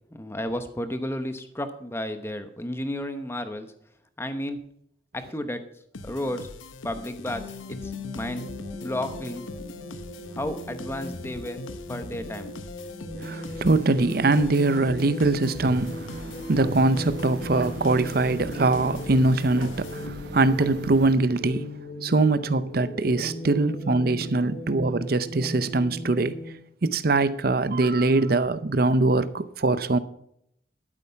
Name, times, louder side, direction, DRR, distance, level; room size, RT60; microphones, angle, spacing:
voice 1, 0.1-3.7 4.2-4.6 5.1-5.6 6.0-6.5 6.8-7.4 7.7-8.5 8.8-9.4 10.4-11.6 11.9-12.5, left 1 dB, 15° left, 0.9 m, -32 dB
sound 1, 5.9-20.5, left 2 dB, 85° left, 0.8 m, -41 dB
sound 2, 7.3-26.5, left 1 dB, 50° left, 2.7 m, -38 dB
voice 2, 13.2-21.7 22.0-26.4 26.8-30.0, right 2 dB, 50° right, 0.7 m, -23 dB
sound 3, 15.6-21.1, right 2 dB, 70° right, 1.0 m, -39 dB
12.0 x 8.5 x 5.7 m
head